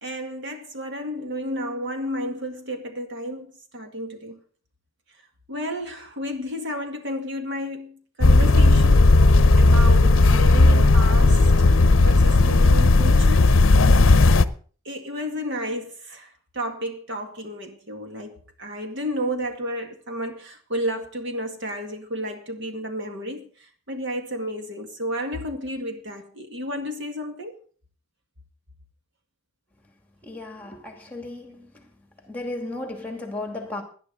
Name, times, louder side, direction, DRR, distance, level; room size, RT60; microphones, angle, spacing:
voice 1, 0.0-4.4 5.5-11.5 12.0-13.6 14.9-27.6, equal, 60° right, 2.0 m, -32 dB
sound 1, 8.2-14.4, left 2 dB, 65° left, 0.7 m, -15 dB
voice 2, 30.2-31.8 32.3-33.8, left 2 dB, 10° left, 2.4 m, -34 dB
17.5 x 10.5 x 4.0 m
head